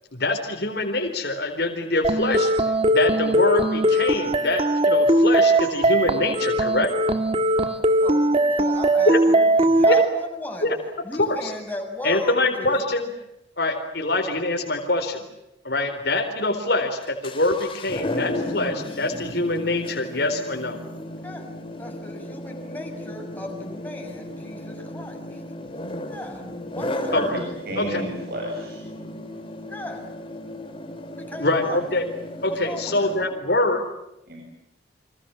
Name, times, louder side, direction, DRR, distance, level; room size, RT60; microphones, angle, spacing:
voice 1, 0.1-2.5 2.9-6.9 9.1-9.2 9.9-10.0 10.6-10.8 11.2-11.5 12.0-13.1 13.6-15.2 15.6-20.8 27.1-27.4 27.8-28.0 31.4-32.1 32.4-33.8, left 2 dB, 60° left, 3 dB, 4.2 m, -24 dB
sound 1, 2.0-10.1, right 1 dB, 30° right, 1.7 m, -20 dB
voice 2, 8.0-10.7 11.0-12.7 21.2-21.5 21.8-25.4 26.1-26.4 26.7-27.1 29.7-30.1 31.2-31.8 32.5-33.1, left 1 dB, 10° left, 1 dB, 6.5 m, -36 dB
sound 2, 17.0-33.3, left 1 dB, 30° left, 3.4 m, -35 dB
voice 3, 27.1-28.8 34.3-34.4, right 1 dB, 55° right, 0 dB, 7.7 m, -32 dB
30.0 x 25.5 x 7.4 m, 0.87 s
head